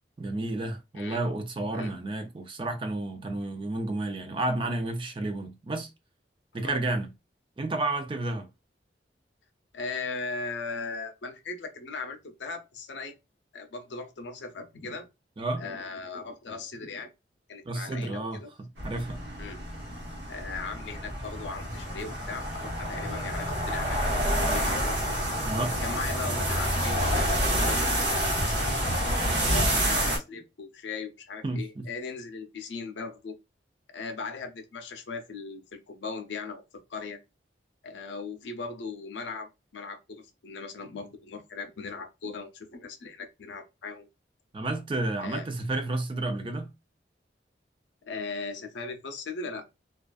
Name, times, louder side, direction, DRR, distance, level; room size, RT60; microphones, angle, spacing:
voice 1, 0.2-5.9 6.5-7.1 7.6-8.5 15.4-15.6 17.7-19.2 25.4-25.8 31.4-31.9 44.5-46.7, right 2 dB, 30° right, 0.3 m, -31 dB
voice 2, 9.7-13.2 13.5-15.1 15.6-17.1 17.5-18.5 19.4-19.6 20.3-25.0 25.8-27.8 28.1-29.0 29.5-33.4 33.9-36.6 36.9-37.2 37.8-44.1 45.2-45.5 48.0-49.7, left 4 dB, 85° left, 0.5 m, -38 dB
sound 1, 18.8-30.2, equal, 80° right, 1.0 m, -28 dB
2.4 x 2.3 x 2.3 m
head